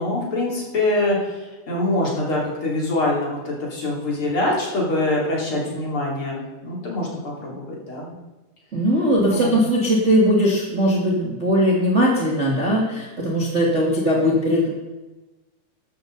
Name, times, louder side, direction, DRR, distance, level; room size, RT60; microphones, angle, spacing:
voice 1, 0.0-7.1 7.4-8.2 9.3-9.6, left 2 dB, 40° left, -3 dB, 3.5 m, -24 dB
voice 2, 8.7-14.7, equal, 25° right, -3 dB, 1.7 m, -19 dB
14.0 x 12.5 x 3.9 m, 1.1 s
omnidirectional pair, 3.7 m